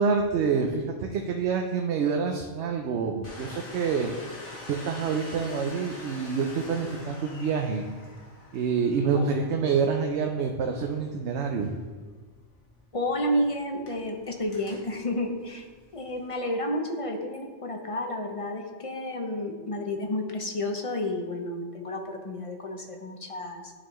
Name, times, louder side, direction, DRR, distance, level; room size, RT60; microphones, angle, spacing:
voice 1, 0.0-4.1 4.7-7.9 8.5-11.8, right 5 dB, 70° right, 3 dB, 0.8 m, -27 dB
Domestic sounds home sounds, 3.2-16.3, left 2 dB, 80° left, 1.6 m, -46 dB
voice 2, 12.9-15.7 15.9-23.7, left 1 dB, 40° left, 3 dB, 0.6 m, -31 dB
11.0 x 4.2 x 3.0 m, 1.5 s
omnidirectional pair, 1.2 m